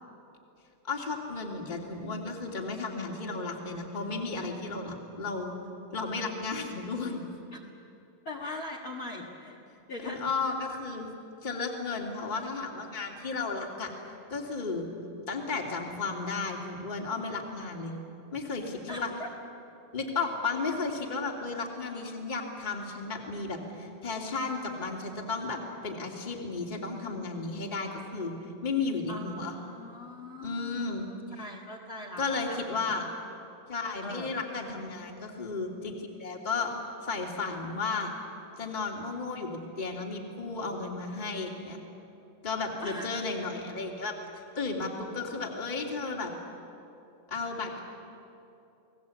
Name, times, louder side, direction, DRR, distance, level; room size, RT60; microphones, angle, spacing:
voice 1, 0.9-5.5 5.9-7.2 8.5-8.6 10.0-11.1 11.4-13.9 14.3-14.9 15.3-17.9 18.3-19.1 19.9-28.3 28.6-29.5 30.4-31.1 32.2-33.0 33.7-36.7 37.0-38.1 38.6-41.8 42.4-44.2 44.6-46.3 47.3-47.8, left 4 dB, 15° left, 1 dB, 2.2 m, -34 dB
voice 2, 8.3-9.6 9.9-10.3 18.9-19.3 29.1-33.0 34.0-34.3 42.8-43.3, left 1 dB, 45° left, -2 dB, 2.1 m, -41 dB
30.0 x 19.0 x 8.4 m, 2.8 s
omnidirectional pair, 3.9 m